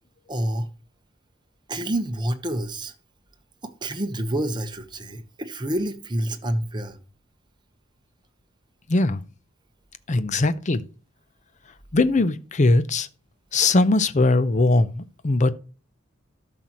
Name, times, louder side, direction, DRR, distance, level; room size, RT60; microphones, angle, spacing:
voice 1, 0.3-0.7 1.7-2.9 3.6-7.0, right 1 dB, 20° right, 1.0 m, -28 dB
voice 2, 8.9-9.2 10.1-10.8 11.9-13.1 13.5-15.5, left 2 dB, 35° left, 0.6 m, -20 dB
13.0 x 5.9 x 3.0 m
head